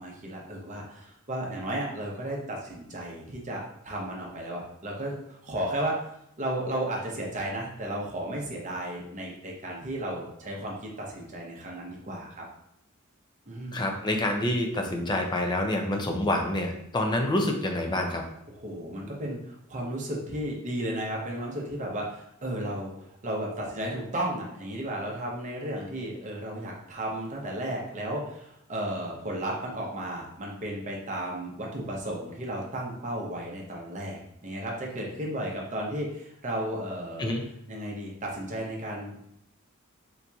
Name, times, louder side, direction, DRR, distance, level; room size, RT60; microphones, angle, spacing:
voice 1, 0.0-6.0 6.4-12.4 13.5-13.8 18.5-37.3 37.7-39.3, right 1 dB, 35° right, -1 dB, 0.7 m, -34 dB
voice 2, 13.7-18.2 37.2-37.4, left 1 dB, 20° left, 3 dB, 0.4 m, -27 dB
3.9 x 2.8 x 2.3 m, 0.77 s
head